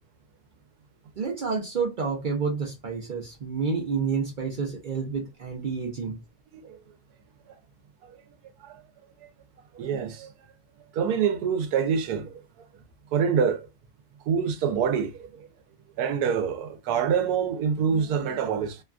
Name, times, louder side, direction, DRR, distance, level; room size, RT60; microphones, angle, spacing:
voice 1, 1.2-6.2, right 5 dB, 65° right, 0.4 m, -29 dB
voice 2, 9.7-10.3 10.9-12.3 13.1-13.7 14.3-15.5 16.0-18.8, right 7 dB, 85° right, 1.1 m, -26 dB
3.0 x 2.3 x 2.4 m
omnidirectional pair, 1.6 m